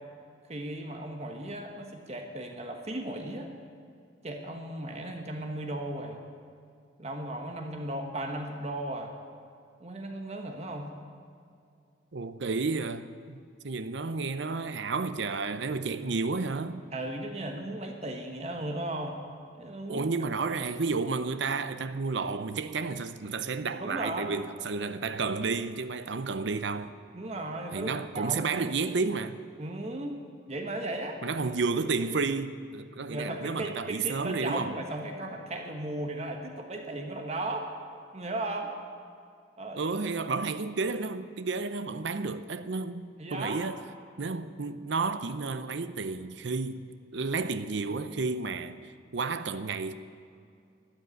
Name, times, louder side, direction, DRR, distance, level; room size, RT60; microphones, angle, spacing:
voice 1, 0.5-3.5 4.2-6.2 7.0-9.1 9.8-10.9 16.9-19.2 19.6-20.7 23.8-24.3 27.1-28.5 29.6-30.2 30.5-31.2 33.1-37.7 38.1-38.7 39.6-40.0 43.2-43.6, right 1 dB, 35° right, 1.2 m, -36 dB
voice 2, 12.1-13.4 13.6-16.8 19.9-26.9 27.7-29.4 31.2-34.8 39.7-43.8 44.2-46.9 47.1-49.9, right 4 dB, 65° right, 0.6 m, -31 dB
13.0 x 10.5 x 9.4 m
head